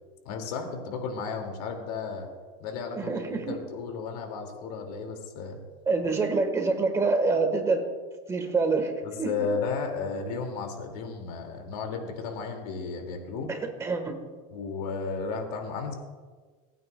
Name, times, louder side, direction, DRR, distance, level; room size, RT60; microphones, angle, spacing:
voice 1, 0.2-2.3 2.6-3.2 3.5-5.6 9.2-13.5 14.5-16.0, left 4 dB, 80° left, 3 dB, 2.3 m, -33 dB
voice 2, 2.9-3.6 5.9-7.8 8.3-8.9 9.2-9.5 13.5-14.2, right 4 dB, 15° right, 5 dB, 1.4 m, -26 dB
27.0 x 9.3 x 2.3 m, 1.4 s
supercardioid pair, 160°, 20 cm